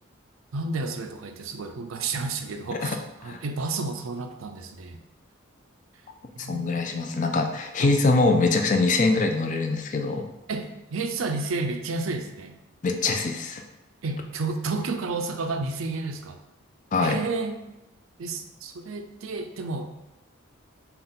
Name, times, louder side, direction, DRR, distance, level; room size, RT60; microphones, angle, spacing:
voice 1, 0.5-5.0 6.4-6.7 7.8-7.9 10.5-12.6 14.0-16.4 17.0-17.6 18.2-20.0, right 3 dB, 80° right, 6 dB, 0.5 m, -31 dB
voice 2, 6.4-10.3 12.8-13.6 16.9-17.2, left 3 dB, 40° left, 4 dB, 0.4 m, -23 dB
5.4 x 2.3 x 3.8 m, 0.95 s
head